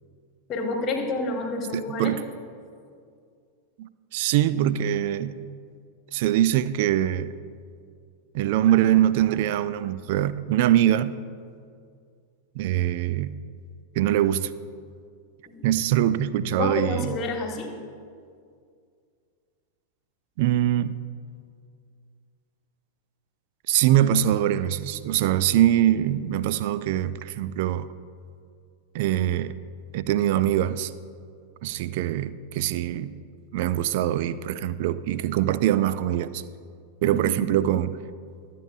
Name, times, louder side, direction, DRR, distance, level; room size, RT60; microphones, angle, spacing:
voice 1, 0.5-2.1 15.5-15.6 16.5-17.7 37.0-37.5, left 3 dB, 30° left, 1.5 m, -29 dB
voice 2, 1.7-2.2 3.8-5.4 6.1-7.3 8.3-11.2 12.6-13.4 13.9-14.5 15.6-17.2 20.4-21.0 23.7-27.9 28.9-29.5 29.9-30.9 31.6-33.1 33.5-36.4 37.0-38.0, right 12 dB, 50° right, 0.4 m, -23 dB
23.0 x 8.4 x 2.5 m
figure-of-eight pair, 90°, 0 cm